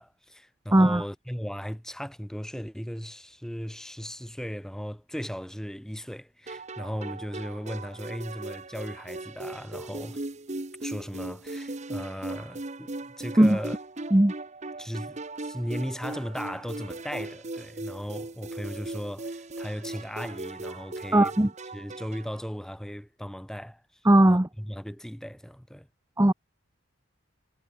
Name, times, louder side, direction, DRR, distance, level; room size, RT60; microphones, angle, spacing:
voice 1, 0.0-10.2 10.8-13.8 14.8-21.4 21.7-23.8 24.3-25.9, equal, ahead, 1.9 m, -37 dB
voice 2, 0.7-1.0 13.4-13.6 14.1-14.3 21.1-21.5 24.0-24.5 26.2-26.3, right 1 dB, 15° right, 0.8 m, -18 dB
sound 1, 6.5-22.4, right 2 dB, 30° right, 1.1 m, -38 dB
head